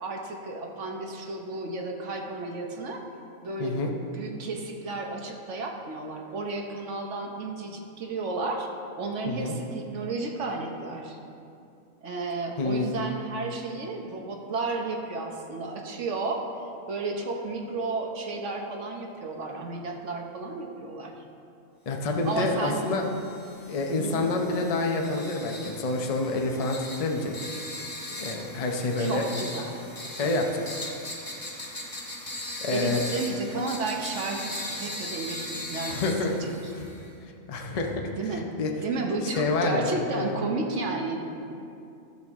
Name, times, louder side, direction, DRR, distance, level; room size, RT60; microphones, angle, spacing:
voice 1, 0.0-3.0 3.4-3.8 4.1-8.7 8.9-11.2 12.0-16.5 16.9-21.1 22.2-22.9 24.0-24.3 29.0-29.8 30.2-30.4 32.7-36.0 36.4-36.5 38.2-38.5 38.8-41.3, right 3 dB, 65° right, 2 dB, 1.1 m, -32 dB
voice 2, 21.9-23.0 23.7-27.3 28.2-29.2 30.2-30.7 32.6-33.0 35.9-36.3 36.7-36.9 37.5-38.0 38.3-38.7 39.4-40.4, left 2 dB, 35° left, 2 dB, 0.6 m, -28 dB
sound 1, 22.2-37.1, left 1 dB, 15° left, 1.0 m, -39 dB
12.0 x 6.9 x 3.6 m, 2.6 s
omnidirectional pair, 1.4 m